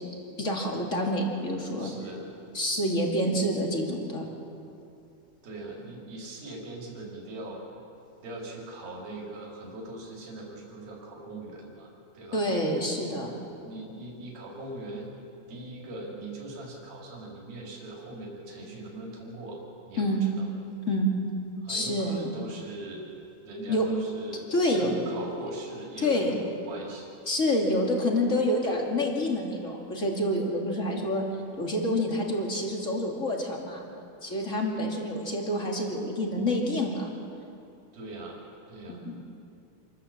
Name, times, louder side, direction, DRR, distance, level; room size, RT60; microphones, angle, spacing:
voice 1, 0.4-1.9 2.5-4.2 12.3-13.4 20.0-20.2 20.9-21.1 21.7-22.3 23.7-23.9 24.5-25.0 26.0-26.3 27.3-31.2 31.6-33.9 34.2-37.1 38.9-39.2, left 1 dB, 25° left, 0 dB, 2.0 m, -27 dB
voice 2, 1.8-2.3 5.4-7.6 8.2-12.4 13.6-15.1 15.5-19.6 19.8-20.5 21.6-23.1 23.4-27.1 37.9-38.4 38.7-39.0, right 1 dB, 70° right, -2 dB, 5.1 m, -41 dB
27.5 x 14.0 x 7.3 m, 2.6 s
omnidirectional pair, 4.4 m